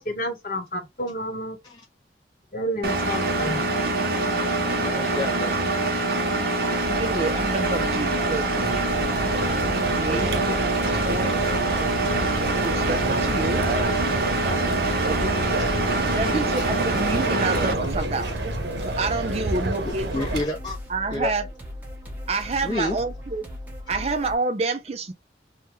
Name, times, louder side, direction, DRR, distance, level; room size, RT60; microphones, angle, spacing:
voice 1, 0.0-1.6 2.5-3.6, equal, 50° left, 1.0 m, -30 dB
Engine, 2.8-17.7, right 2 dB, 55° right, 0.9 m, -25 dB
voice 2, 4.6-5.6 12.5-12.6 13.9-14.0 14.5-14.7 15.6-15.7 16.6-16.8 19.4-19.6 19.8-20.8 21.1-21.3 22.6-23.0 23.9-24.0, left 2 dB, 25° left, 0.4 m, -31 dB
sound 1, 6.8-24.3, left 1 dB, 10° right, 1.0 m, -38 dB
voice 3, 7.0-8.4 10.0-10.5 10.9-11.3 12.6-13.6 15.0-15.7 16.1-18.3 18.8-20.1 20.9-21.4 22.3-23.5 23.9-25.1, right 3 dB, 35° right, 0.4 m, -28 dB
sound 2, 8.5-20.4, right 2 dB, 80° right, 0.9 m, -29 dB
3.3 x 2.2 x 3.1 m
head